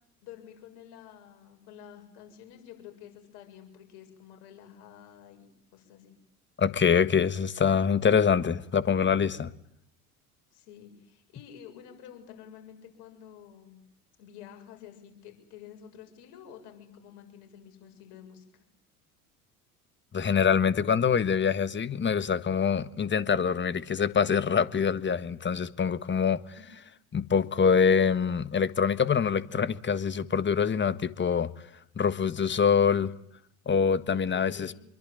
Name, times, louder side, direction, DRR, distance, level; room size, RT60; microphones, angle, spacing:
voice 1, 0.2-6.1 10.5-13.8 14.2-18.4 34.1-34.8, left 9 dB, 60° left, 7.3 m, -49 dB
voice 2, 6.6-9.5 20.1-26.4 27.1-31.5 32.0-33.1 33.6-34.7, left 6 dB, 25° left, 1.5 m, -25 dB
27.0 x 23.0 x 9.3 m
hypercardioid pair, 70°, 44 cm